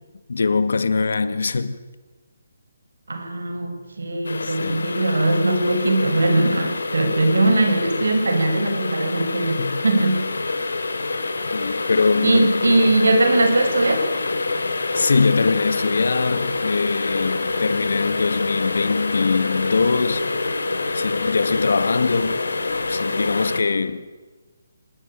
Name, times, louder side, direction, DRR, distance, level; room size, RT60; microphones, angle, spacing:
voice 1, 0.3-1.8 4.4-5.0 9.6-9.8 11.5-13.0 14.9-20.3 20.9-22.4 22.9-24.1, left 4 dB, 70° left, 1.9 m, -22 dB
voice 2, 3.1-10.3 12.2-14.1, right 2 dB, 85° right, 6.3 m, -20 dB
sound 1, 4.2-23.6, left 3 dB, 85° left, 3.7 m, -26 dB
26.0 x 20.0 x 9.1 m
hypercardioid pair, 165°, 0 cm